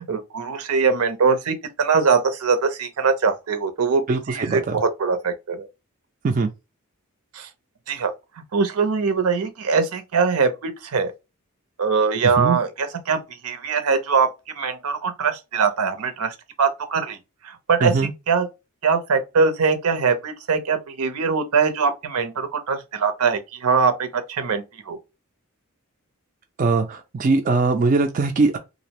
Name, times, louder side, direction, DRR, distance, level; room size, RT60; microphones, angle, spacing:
voice 1, 0.0-5.7 7.3-7.5 7.9-8.1 8.5-11.1 11.8-14.3 14.6-17.2 17.4-17.9 18.3-18.5 18.8-25.0, right 5 dB, 80° right, 0.6 m, -22 dB
voice 2, 4.1-4.8 6.2-6.5 12.4-12.6 17.8-18.1 26.6-28.6, right 3 dB, 35° right, 0.3 m, -21 dB
2.5 x 2.0 x 2.8 m
head